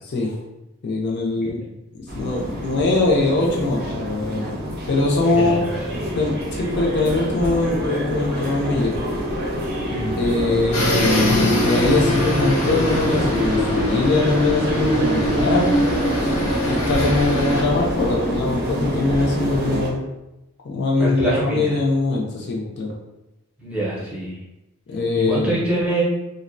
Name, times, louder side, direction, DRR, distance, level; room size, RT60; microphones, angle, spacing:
voice 1, 0.1-0.4 0.8-1.6 1.9-4.6 4.9-5.7 6.1-9.0 10.2-15.8 16.6-20.0 20.6-22.9 24.9-25.7, left 2 dB, 50° left, -2 dB, 0.4 m, -22 dB
sound 1, 2.1-19.9, equal, 45° right, 0.6 m, -25 dB
voice 2, 5.2-5.9 9.9-10.3 21.0-21.8 23.6-24.4 25.2-26.0, right 1 dB, 5° right, -8 dB, 0.6 m, -25 dB
sound 2, 10.7-17.6, left 1 dB, 85° left, 0.7 m, -25 dB
2.5 x 2.0 x 2.5 m, 0.96 s
head